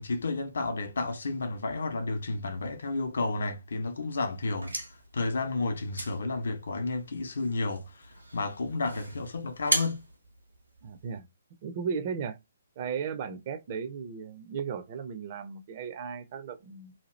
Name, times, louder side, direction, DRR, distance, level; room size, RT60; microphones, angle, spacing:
voice 1, 0.0-10.0, left 3 dB, 60° left, 0.6 m, -32 dB
sound 1, 4.4-11.2, right 1 dB, 85° right, 1.0 m, -37 dB
voice 2, 10.8-11.3 11.6-12.4 12.8-16.9, right 6 dB, 35° right, 0.5 m, -35 dB
2.7 x 2.3 x 3.1 m
figure-of-eight pair, 130°, 0 cm